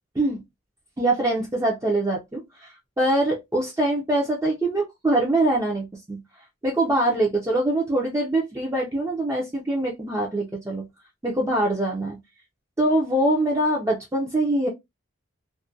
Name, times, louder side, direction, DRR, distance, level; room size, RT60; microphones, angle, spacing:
voice 1, 1.0-6.2 6.6-10.8 11.2-12.2 12.8-14.7, right 1 dB, 15° right, 0.4 m, -23 dB
2.3 x 2.1 x 2.5 m
head